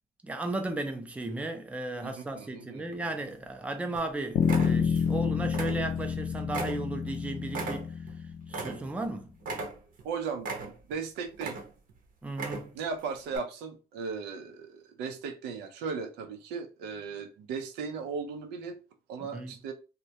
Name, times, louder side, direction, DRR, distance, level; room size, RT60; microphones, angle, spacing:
voice 1, 0.2-8.0 8.5-9.3 12.2-12.7 19.3-19.5, right 2 dB, 10° right, 0.4 m, -35 dB
voice 2, 2.0-3.0 10.0-11.6 12.7-18.8 19.1-19.7, right 5 dB, 85° right, 0.5 m, -37 dB
sound 1, 2.9-3.6 3.9-4.1 4.4-5.2 5.5-6.2 6.5-9.1 9.4-10.1 10.4-11.0 11.3-11.9 12.3-12.9 13.3-13.4, right 3 dB, 55° right, 0.7 m, -38 dB
Bass guitar, 4.4-8.8, left 7 dB, 60° left, 0.4 m, -29 dB
2.2 x 2.1 x 2.7 m
cardioid pair, 110°, 17 cm